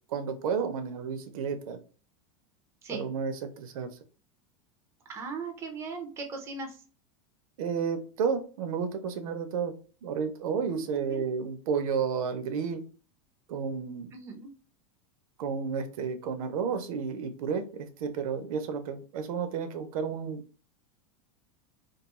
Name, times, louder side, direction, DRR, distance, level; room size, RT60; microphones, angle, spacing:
voice 1, 0.1-1.8 2.9-3.9 7.6-9.7 10.0-12.8 13.5-14.1 15.4-20.4, right 6 dB, 80° right, 8 dB, 0.6 m, -31 dB
voice 2, 5.1-6.8 10.7-11.2 14.1-14.5, right 4 dB, 15° right, 3 dB, 0.4 m, -38 dB
2.3 x 2.3 x 2.9 m, 0.37 s
supercardioid pair, 155°, 18 cm